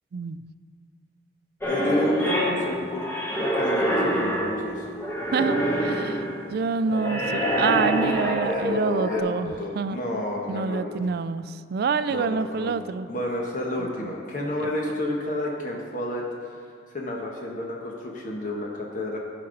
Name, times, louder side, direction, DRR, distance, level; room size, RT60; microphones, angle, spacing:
sound 1, 1.6-9.2, right 1 dB, 15° left, 1.2 m, -26 dB
voice 1, 1.7-3.1 3.4-4.9 8.4-11.0 12.1-12.7 13.1-16.5 16.9-19.2, left 1 dB, 45° left, -2 dB, 1.2 m, -30 dB
voice 2, 5.3-6.2 6.5-10.0 10.5-13.1 13.8-14.1, right 5 dB, 60° right, 13 dB, 0.3 m, -27 dB
15.0 x 5.3 x 3.9 m, 2.2 s
head